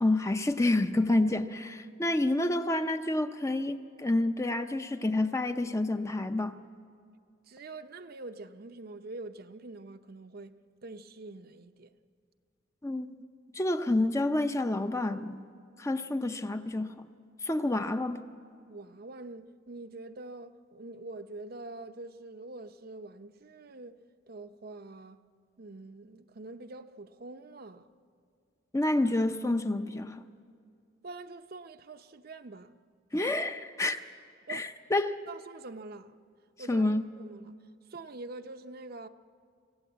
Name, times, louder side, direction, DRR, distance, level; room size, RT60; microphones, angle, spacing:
voice 1, 0.0-6.6 12.8-13.1 13.5-15.4 15.8-17.1 17.4-18.2 28.7-30.2 33.1-34.0 34.5-35.2 36.7-37.1, left 2 dB, 15° left, 0.6 m, -28 dB
voice 2, 7.5-10.5 10.8-11.9 18.7-23.9 24.3-25.2 25.6-27.9 31.0-32.8 34.5-34.7 35.3-36.2 36.6-36.9 37.2-37.6 37.9-39.1, right 2 dB, 50° right, 0.7 m, -45 dB
26.5 x 15.5 x 8.0 m
head